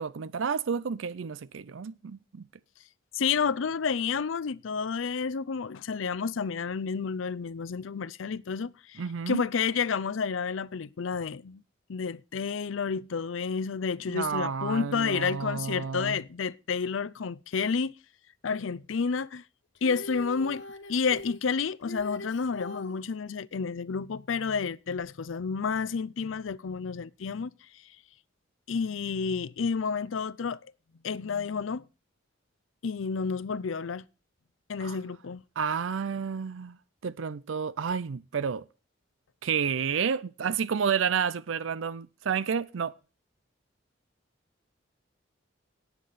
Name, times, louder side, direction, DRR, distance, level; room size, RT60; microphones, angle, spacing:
voice 1, 0.0-2.5 9.0-9.4 14.1-16.2 34.8-35.0 35.6-36.8 37.0-38.6 39.4-43.0, right 6 dB, 80° right, 0.5 m, -30 dB
voice 2, 3.1-9.0 9.3-11.6 11.9-17.9 18.4-19.4 19.8-20.6 20.9-27.5 28.7-30.6 31.0-31.8 32.8-34.0 34.7-35.4, left 5 dB, 85° left, 0.5 m, -30 dB
Female singing, 19.7-23.0 25.0-25.1, left 1 dB, 65° left, 1.3 m, -42 dB
17.5 x 8.2 x 4.1 m
head